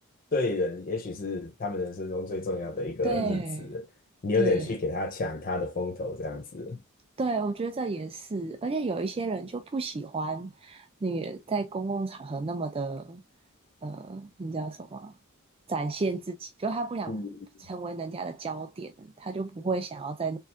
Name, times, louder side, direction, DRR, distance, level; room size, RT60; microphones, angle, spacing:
voice 1, 0.3-3.4 3.7-3.8 4.2-6.8 17.1-17.4, left 2 dB, 40° left, 0.7 m, -30 dB
voice 2, 3.0-3.7 4.3-4.7 7.2-13.2 13.8-15.1 15.7-17.2 17.6-20.4, right 3 dB, 25° right, 0.4 m, -32 dB
4.4 x 3.5 x 2.6 m
head